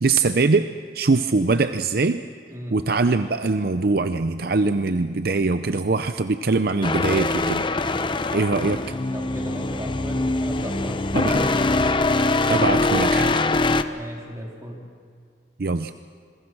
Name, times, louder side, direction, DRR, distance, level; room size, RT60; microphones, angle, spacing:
voice 1, 0.0-2.2 2.7-7.7 8.3-8.8 11.1-11.4 12.5-13.4 15.6-15.9, right 3 dB, 60° right, 10 dB, 0.6 m, -22 dB
voice 2, 2.5-2.8 9.1-12.0 13.9-14.9, equal, 20° right, -1 dB, 3.9 m, -37 dB
sound 1, 6.8-13.8, left 2 dB, 30° left, 0.7 m, -23 dB
27.0 x 21.5 x 6.1 m, 2.1 s
head